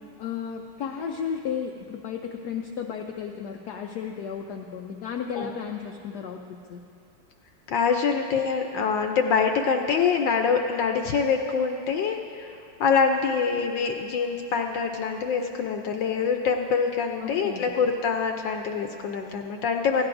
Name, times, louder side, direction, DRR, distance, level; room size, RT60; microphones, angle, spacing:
voice 1, 0.2-6.4 6.7-6.8 17.2-17.7, left 7 dB, 90° left, 3 dB, 0.8 m, -33 dB
voice 2, 7.7-20.1, left 5 dB, 70° left, 4 dB, 1.2 m, -25 dB
16.5 x 15.5 x 2.6 m, 2.5 s
omnidirectional pair, 2.4 m